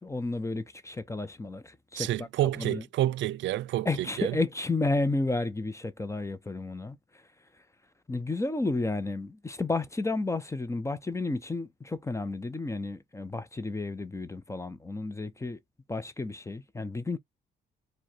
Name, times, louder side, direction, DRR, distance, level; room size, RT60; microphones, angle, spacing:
voice 1, 0.0-2.3 2.6-2.8 3.8-7.0 8.1-15.6 15.9-17.2, left 2 dB, 15° left, 0.6 m, -32 dB
voice 2, 2.0-4.4, right 13 dB, 70° right, 0.4 m, -29 dB
4.7 x 2.3 x 4.2 m
cardioid pair, 90°, 20 cm